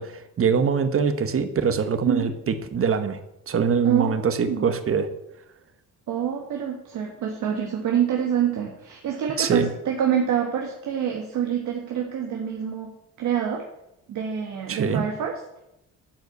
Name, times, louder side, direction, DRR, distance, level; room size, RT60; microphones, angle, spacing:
voice 1, 0.0-3.2 3.5-5.1 9.4-9.7 14.7-15.0, right 6 dB, 45° right, 9 dB, 1.2 m, -23 dB
voice 2, 3.8-4.7 6.1-12.9 13.2-13.6 14.1-15.4, right 8 dB, 75° right, 1 dB, 1.5 m, -26 dB
12.0 x 4.7 x 8.1 m, 0.86 s
cardioid pair, 90°, 30 cm